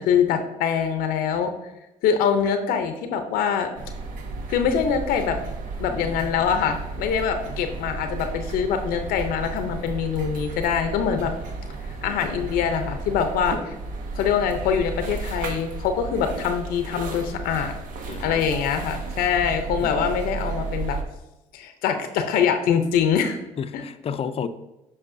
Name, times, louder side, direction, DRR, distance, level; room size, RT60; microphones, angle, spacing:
voice 1, 0.0-1.5 2.0-3.7 4.5-5.4 5.8-11.3 12.0-13.8 14.2-17.7 18.2-21.0 21.5-23.4 23.7-23.8, left 7 dB, 80° left, 7 dB, 0.7 m, -24 dB
sound 1, 3.8-21.0, right 3 dB, 65° right, 1.0 m, -33 dB
voice 2, 18.1-18.4 19.8-20.1 23.6-24.5, left 7 dB, 40° left, 11 dB, 0.5 m, -32 dB
8.0 x 5.4 x 2.6 m, 0.98 s
supercardioid pair, 80°, 15 cm